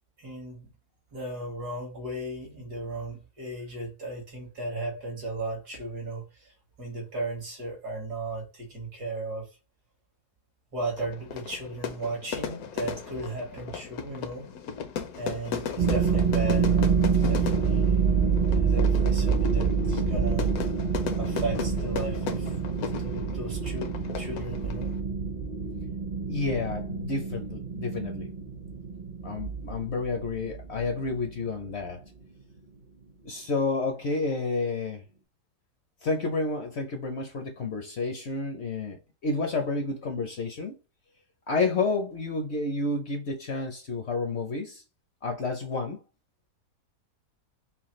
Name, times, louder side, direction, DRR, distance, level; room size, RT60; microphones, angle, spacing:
voice 1, 0.2-0.7 1.1-9.5 10.7-14.5 15.1-18.1 18.6-20.5 21.2-22.5 23.0-24.9, right 2 dB, 85° right, 2.8 m, -35 dB
Fire / Fireworks, 11.0-25.0, left 7 dB, 70° left, 1.1 m, -37 dB
sound 1, 15.8-31.7, right 6 dB, 45° right, 0.6 m, -27 dB
voice 2, 26.3-28.3 29.2-32.0 33.2-35.0 36.0-40.7 41.5-44.8 45.2-46.0, left 3 dB, 55° left, 0.8 m, -30 dB
5.7 x 2.3 x 3.0 m
omnidirectional pair, 1.7 m